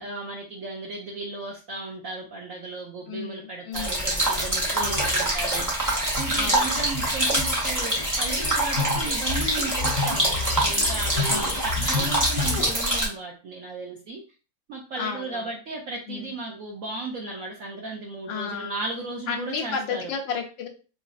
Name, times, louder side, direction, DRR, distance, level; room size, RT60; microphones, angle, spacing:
voice 1, 0.0-5.7 6.2-14.2 14.7-20.0, right 3 dB, 70° right, 0 dB, 0.8 m, -35 dB
voice 2, 3.1-4.1 4.8-5.1 6.3-6.7 11.3-11.6 15.0-15.5 16.1-16.3 18.3-18.7 19.3-20.7, left 6 dB, 80° left, 4 dB, 1.4 m, -33 dB
sound 1, 3.7-13.1, right 1 dB, 15° right, 0.8 m, -25 dB
sound 2, 3.9-12.7, left 3 dB, 15° left, 1.8 m, -32 dB
sound 3, 4.9-5.2 7.5-7.8 9.1-9.2 9.7-10.1 12.0-12.9, left 4 dB, 60° left, 1.4 m, -40 dB
4.0 x 3.1 x 2.5 m, 0.35 s
omnidirectional pair, 2.1 m